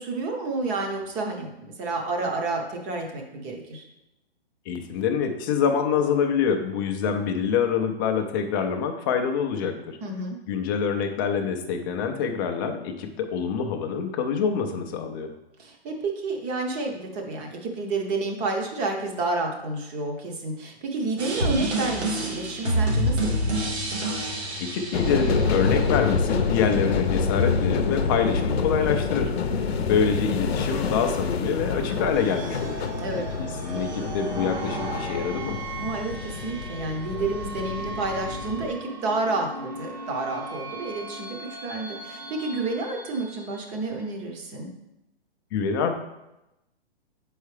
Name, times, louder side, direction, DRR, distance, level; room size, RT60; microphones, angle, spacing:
voice 1, 0.0-3.8 10.0-10.4 15.6-23.7 29.5-29.9 33.0-33.3 35.8-44.7, right 3 dB, 20° right, 2 dB, 0.8 m, -30 dB
voice 2, 4.7-10.0 10.5-15.3 24.6-29.3 29.9-32.9 33.4-35.6 45.5-46.0, left 6 dB, 20° left, 4 dB, 0.4 m, -26 dB
sound 1, 21.2-26.1, right 1 dB, 75° right, 2.0 m, -27 dB
sound 2, 24.9-38.7, left 5 dB, 70° left, 0.7 m, -27 dB
sound 3, 31.4-43.9, right 2 dB, 45° right, 1.0 m, -38 dB
7.1 x 4.7 x 3.3 m, 0.92 s
hypercardioid pair, 140°, 32 cm